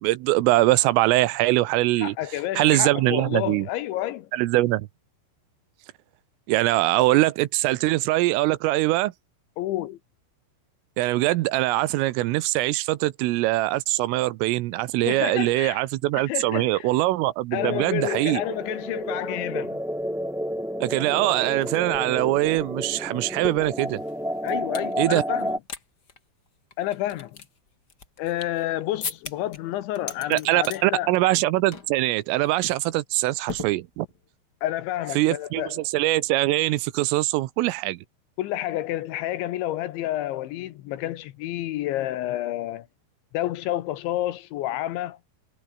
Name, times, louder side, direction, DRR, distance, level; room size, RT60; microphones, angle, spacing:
voice 1, 0.0-2.2 2.6-3.7 4.3-4.9 6.5-9.1 11.0-18.4 20.8-24.0 25.0-25.2 30.3-34.1 35.2-38.0, right 18 dB, 85° right, 3.5 m, -22 dB
voice 2, 2.0-4.3 9.6-10.0 15.1-15.8 16.1-16.9 17.5-19.8 24.4-25.6 26.8-27.4 28.2-31.1 34.6-35.8 38.4-42.9 43.3-45.2, left 14 dB, 75° left, 3.2 m, -29 dB
sound 1, 17.6-25.6, equal, ahead, 3.7 m, -31 dB
sound 2, 21.6-21.7 21.9-24.9 25.3-25.8 26.1-26.2 26.7-28.6 29.0-29.6 29.9-30.8 31.1-31.4 31.7-32.0 32.3-32.5 33.5-34.2, left 5 dB, 40° left, 1.5 m, -38 dB
omnidirectional pair, 5.9 m